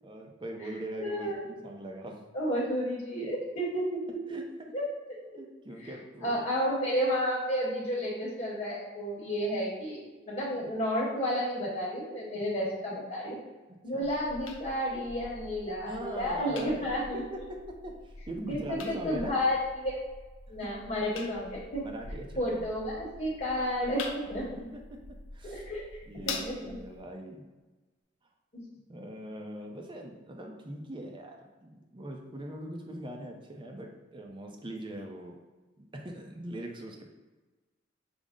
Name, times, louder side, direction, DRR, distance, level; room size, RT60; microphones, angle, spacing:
voice 1, 0.0-2.2 2.5-2.6 4.3-4.7 5.4-6.4 12.3-12.7 13.9-14.1 15.8-17.6 17.8-19.4 21.8-22.6 24.5-24.8 25.3-25.7 26.1-27.5 28.9-35.4 35.8-37.0, right 1 dB, 25° right, 2 dB, 0.5 m, -41 dB
voice 2, 1.0-1.4 2.3-4.0 4.3-4.4 4.7-4.8 5.8-5.9 6.2-13.4 13.8-17.2 18.4-20.0 20.5-21.8 22.4-24.5 25.4-25.8 26.2-26.7 28.5-28.6, equal, 40° left, -6 dB, 1.0 m, -31 dB
sound 1, 14.0-27.0, left 3 dB, 80° left, 0.5 m, -45 dB
5.2 x 2.0 x 3.6 m, 1.2 s
head